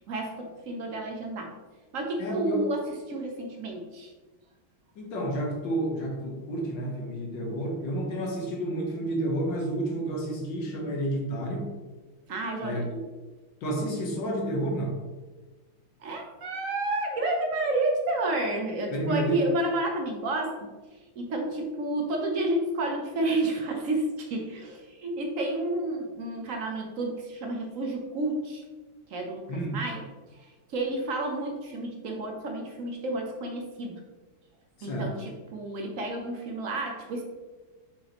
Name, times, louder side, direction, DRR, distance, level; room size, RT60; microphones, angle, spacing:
voice 1, 0.1-1.5 1.9-4.1 12.3-12.9 16.0-20.7 21.2-28.6 29.1-30.0 30.3-34.0 34.8-37.2, right 2 dB, 60° right, 2 dB, 0.9 m, -30 dB
voice 2, 2.2-2.7 5.0-11.7 12.6-12.8 13.6-15.0 18.9-19.4 29.5-29.8 34.8-35.1, right 1 dB, 70° left, 0 dB, 1.8 m, -30 dB
6.6 x 5.0 x 2.9 m, 1.3 s
omnidirectional pair, 2.2 m